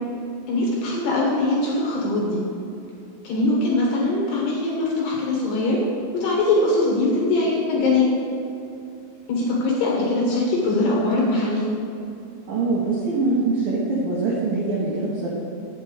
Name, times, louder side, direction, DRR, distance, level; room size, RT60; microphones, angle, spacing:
voice 1, 0.5-2.4 3.2-5.8 6.1-8.1 9.3-11.6, left 2 dB, 70° left, -3 dB, 2.8 m, -22 dB
voice 2, 12.5-15.3, right 3 dB, 90° right, -5 dB, 2.0 m, -23 dB
8.7 x 7.9 x 4.9 m, 2.7 s
omnidirectional pair, 6.0 m